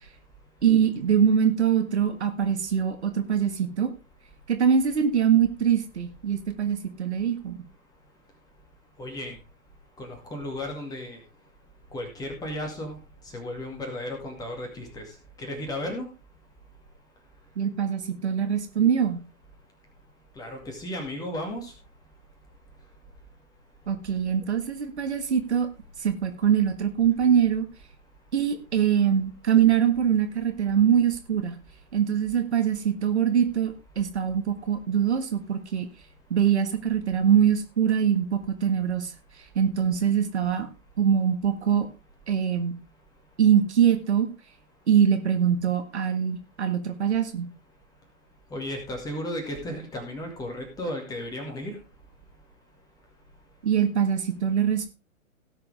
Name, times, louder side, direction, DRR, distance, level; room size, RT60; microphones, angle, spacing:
voice 1, 0.6-3.9 4.5-7.6 17.5-19.2 23.9-25.7 26.0-27.7 28.3-31.6 31.9-35.9 36.3-39.1 39.5-40.7 41.0-41.9 42.3-42.8 43.4-44.3 44.9-47.5 53.6-54.9, right 8 dB, 50° right, 7 dB, 1.7 m, -23 dB
voice 2, 9.0-9.4 10.0-11.2 11.9-13.0 13.3-15.0 15.4-16.0 20.4-21.7 48.5-51.8, left 1 dB, 10° left, 3 dB, 2.3 m, -34 dB
17.0 x 6.9 x 3.4 m, 0.31 s
figure-of-eight pair, 125°, 41 cm